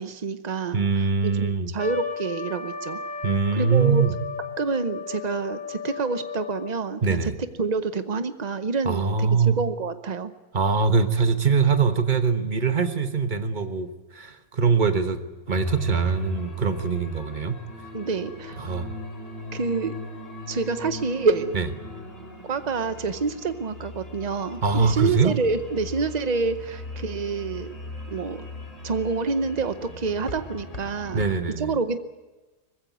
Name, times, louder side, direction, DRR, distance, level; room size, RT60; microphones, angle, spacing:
voice 1, 0.0-3.0 3.5-4.0 4.6-7.3 7.6-10.3 17.9-18.6 19.5-20.0 20.5-21.5 22.4-27.7 28.1-28.5 28.8-31.3 31.6-32.0, right 4 dB, 90° right, 11 dB, 0.3 m, -27 dB
voice 2, 0.7-1.7 3.2-4.2 7.0-7.4 8.8-9.5 10.5-15.2 15.5-17.6 18.6-18.9 21.5-21.6 24.6-25.3 31.1-31.8, right 5 dB, 30° right, 9 dB, 1.0 m, -23 dB
Trumpet, 1.8-6.8, left 5 dB, 5° left, 3.4 m, -34 dB
sound 1, 15.5-31.4, equal, 30° left, 4.1 m, -37 dB
20.5 x 15.5 x 9.4 m, 1.2 s
omnidirectional pair, 2.0 m